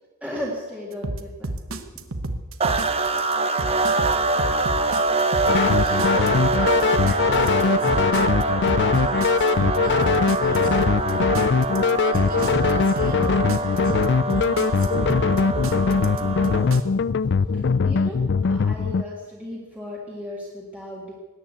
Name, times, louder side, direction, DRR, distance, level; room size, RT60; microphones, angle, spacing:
voice 1, 0.2-2.0 17.5-21.1, left 1 dB, 5° right, -3 dB, 1.9 m, -35 dB
sound 1, 1.0-16.8, right 2 dB, 75° right, 1.2 m, -30 dB
sound 2, 2.6-16.8, right 3 dB, 30° right, 1.0 m, -24 dB
sound 3, 5.5-19.0, left 5 dB, 55° left, 0.4 m, -21 dB
voice 2, 5.6-8.6 8.9-11.4 12.0-14.0 14.3-15.5, right 2 dB, 45° right, 0 dB, 5.3 m, -41 dB
17.5 x 10.0 x 8.2 m, 1.4 s
head